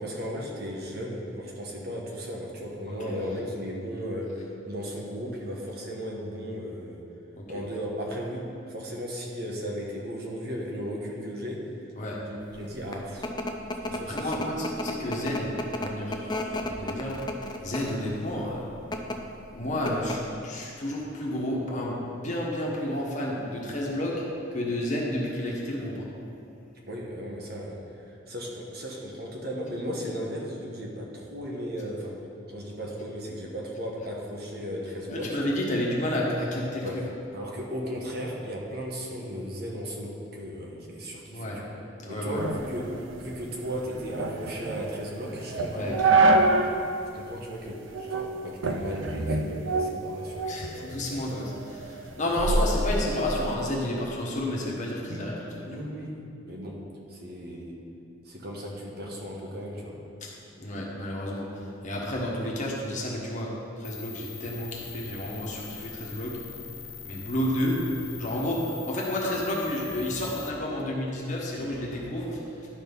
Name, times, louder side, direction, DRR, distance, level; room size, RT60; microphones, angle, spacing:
voice 1, 0.0-7.1 7.5-11.7 12.3-13.3 13.8-14.3 26.9-27.8 28.0-32.2 32.5-35.4 36.8-37.1 37.3-41.7 42.1-46.1 47.1-51.0 51.3-51.5 55.1-55.3 55.7-57.8 58.2-60.0, equal, 55° right, -1 dB, 1.2 m, -36 dB
sound 1, 12.6-18.1 18.8-19.2 19.5-19.6 19.9-20.3, left 1 dB, 20° left, 0.5 m, -33 dB
voice 2, 14.1-17.2 17.6-18.7 19.5-24.2 24.5-26.1 35.1-37.0 41.3-41.6 42.0-42.4 45.6-46.4 50.5-51.5 51.8-55.4 55.8-55.9 60.2-60.3 60.6-63.5 63.8-66.4 67.0-67.8 68.2-72.4, left 1 dB, 40° left, -3 dB, 1.4 m, -31 dB
sound 2, 42.4-46.8 47.2-47.3 47.9-48.3 48.6-50.7 51.1-53.5, right 2 dB, 75° right, 0.6 m, -26 dB
sound 3, 63.8-70.5, left 7 dB, 65° left, 0.6 m, -42 dB
11.0 x 4.3 x 5.4 m, 2.6 s
head